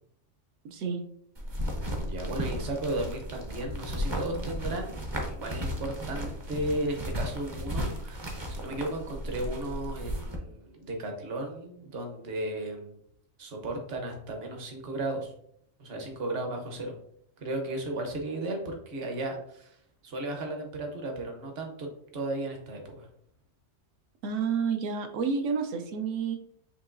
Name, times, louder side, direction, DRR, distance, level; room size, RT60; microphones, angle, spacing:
voice 1, 0.6-1.0 24.2-26.4, right 5 dB, 80° right, 6 dB, 1.0 m, -30 dB
sound 1, 1.4-10.4, equal, 30° right, 0.5 m, -35 dB
voice 2, 1.9-5.0 5.3-13.0 13.4-15.3 15.8-16.9 17.4-19.8 20.0-23.1, right 1 dB, 55° right, 2 dB, 1.1 m, -35 dB
6.7 x 2.8 x 2.5 m, 0.69 s
omnidirectional pair, 1.3 m